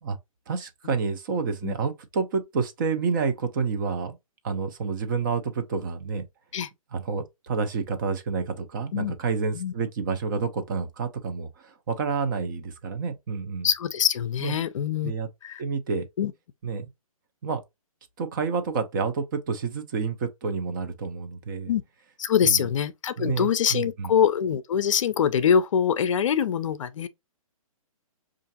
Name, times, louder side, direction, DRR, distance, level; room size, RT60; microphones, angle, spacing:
voice 1, 0.5-4.2 4.4-6.2 6.9-13.7 14.4-14.5 15.0-15.3 15.6-16.1 16.6-16.8 17.4-17.6 18.2-21.7 22.4-22.7 23.2-24.1, right 5 dB, 35° right, 0.6 m, -29 dB
voice 2, 13.6-15.1 15.4-15.6 16.2-16.3 21.7-21.8 22.2-27.1, left 8 dB, 60° left, 0.4 m, -24 dB
5.5 x 2.5 x 2.7 m
hypercardioid pair, 160°, 18 cm